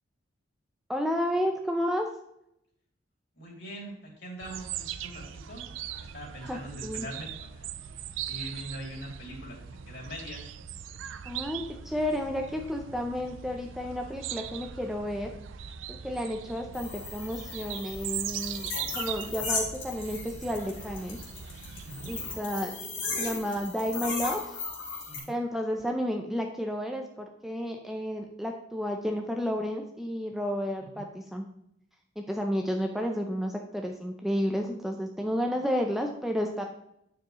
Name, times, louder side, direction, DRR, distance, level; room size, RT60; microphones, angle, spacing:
voice 1, 0.9-2.1 6.5-7.1 11.2-15.3 15.9-18.7 18.9-21.2 22.0-22.8 23.1-24.6 25.3-31.5 32.2-36.6, equal, ahead, 3 dB, 0.6 m, -31 dB
voice 2, 3.3-5.7 6.0-7.7 8.3-10.5 21.8-22.1 25.1-25.3 30.9-31.0, equal, 60° left, -2 dB, 2.9 m, -42 dB
sound 1, 4.4-22.4, right 9 dB, 80° right, 0.4 m, -40 dB
sound 2, 16.7-25.2, left 4 dB, 85° left, 3.3 m, -37 dB
9.4 x 6.9 x 3.1 m, 0.75 s
head